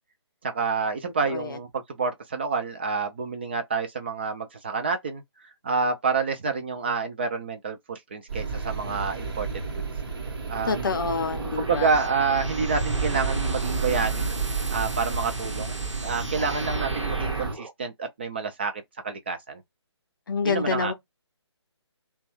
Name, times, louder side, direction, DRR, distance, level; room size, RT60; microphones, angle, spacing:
voice 1, 0.4-5.2 5.6-9.6 10.5-10.9 11.6-14.3 14.7-15.8 16.0-19.6 20.4-20.9, right 5 dB, 25° right, 0.3 m, -28 dB
sound 1, 8.3-17.6, right 4 dB, 55° right, 0.9 m, -31 dB
voice 2, 10.6-11.9 20.3-20.9, left 5 dB, 45° left, 0.6 m, -27 dB
sound 2, 11.3-17.7, right 2 dB, 90° right, 0.9 m, -36 dB
2.9 x 2.2 x 2.9 m
figure-of-eight pair, 145°, 15 cm